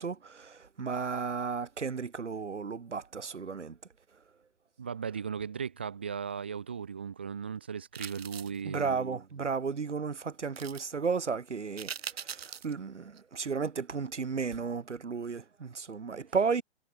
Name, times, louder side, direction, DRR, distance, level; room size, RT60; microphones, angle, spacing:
voice 1, 0.0-3.8 8.6-11.9 12.2-16.6, right 5 dB, 80° right, 2.0 m, -33 dB
voice 2, 4.8-9.0, right 6 dB, 10° right, 0.4 m, -37 dB
sound 1, 7.9-8.6 10.6-10.8 11.8-12.7 13.2-13.3, right 8 dB, 60° right, 2.5 m, -41 dB
figure-of-eight pair, 135°, 35 cm